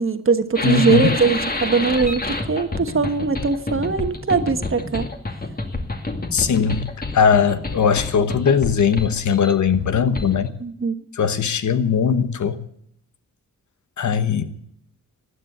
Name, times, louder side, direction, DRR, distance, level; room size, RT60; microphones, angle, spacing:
voice 1, 0.0-5.1 10.6-11.0, right 4 dB, 45° right, 9 dB, 1.4 m, -21 dB
voice 2, 0.6-1.1 6.3-10.5 11.2-12.6 14.0-14.5, left 7 dB, 70° left, 11 dB, 1.2 m, -19 dB
sound 1, 0.6-10.5, left 2 dB, 30° left, 2.3 m, -28 dB
15.0 x 9.8 x 8.5 m, 0.71 s
cardioid pair, 70°, 31 cm